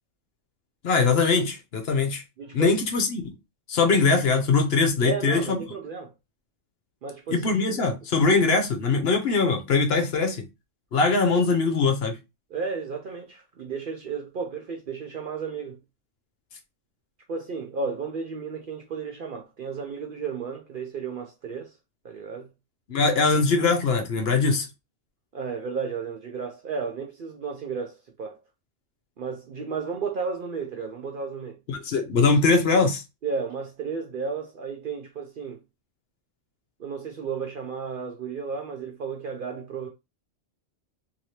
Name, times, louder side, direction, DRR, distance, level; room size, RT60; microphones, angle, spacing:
voice 1, 0.8-2.2 2.5-3.3 3.7-5.4 7.3-10.4 10.9-12.2 22.9-24.7 31.7-33.0, left 4 dB, 60° left, 0.8 m, -22 dB
voice 2, 2.4-2.7 5.0-6.1 7.0-8.0 12.5-15.8 17.3-21.7 22.0-22.5 25.3-28.4 29.2-31.6 33.2-35.6 36.8-39.9, right 5 dB, 60° right, 0.6 m, -33 dB
3.1 x 2.8 x 2.8 m
omnidirectional pair, 1.3 m